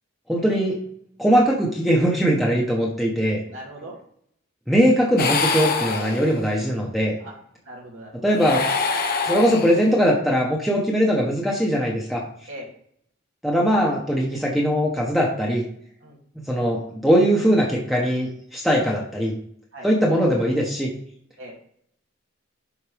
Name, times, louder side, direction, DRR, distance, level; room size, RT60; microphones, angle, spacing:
voice 1, 0.3-0.8 1.2-3.4 4.7-7.1 8.2-8.6 9.2-12.2 13.4-15.6 16.4-19.3 19.8-20.9, equal, ahead, -3 dB, 1.2 m, -20 dB
voice 2, 3.4-4.0 7.2-7.4 7.6-8.3 12.5-12.7 16.0-16.2 19.7-19.9 21.4-21.5, right 1 dB, 70° right, -3 dB, 2.9 m, -39 dB
sound 1, 5.2-6.6 8.3-10.1, left 4 dB, 45° left, 0.9 m, -25 dB
11.0 x 4.4 x 3.5 m, 0.66 s
head